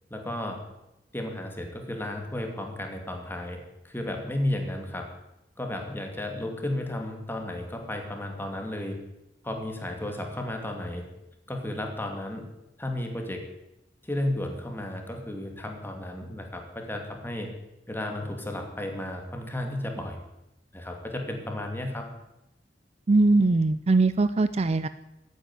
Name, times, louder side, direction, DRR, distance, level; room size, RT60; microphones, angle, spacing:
voice 1, 0.1-0.6 1.1-5.1 5.6-9.0 9.4-11.1 11.5-12.5 12.8-13.5 14.0-17.5 17.9-20.2 20.7-22.0, left 1 dB, 10° left, 3 dB, 2.5 m, -33 dB
voice 2, 23.1-24.9, right 3 dB, 35° right, 13 dB, 0.5 m, -21 dB
14.0 x 9.3 x 9.7 m, 0.91 s
head